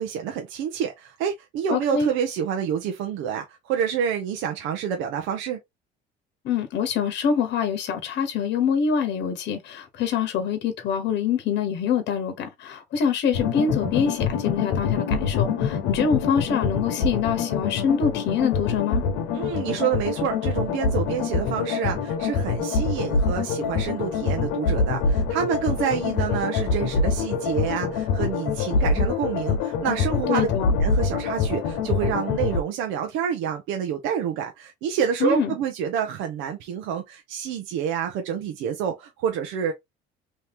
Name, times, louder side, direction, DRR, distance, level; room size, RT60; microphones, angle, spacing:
voice 1, 0.0-5.6 19.3-30.5 30.8-39.7, right 8 dB, 75° right, 0.9 m, -28 dB
voice 2, 1.7-2.1 6.4-19.0 30.3-30.8 35.2-35.6, left 6 dB, 60° left, 1.0 m, -25 dB
sound 1, 13.3-32.6, left 5 dB, 90° left, 1.0 m, -25 dB
3.1 x 2.8 x 3.5 m
supercardioid pair, 95°, 20 cm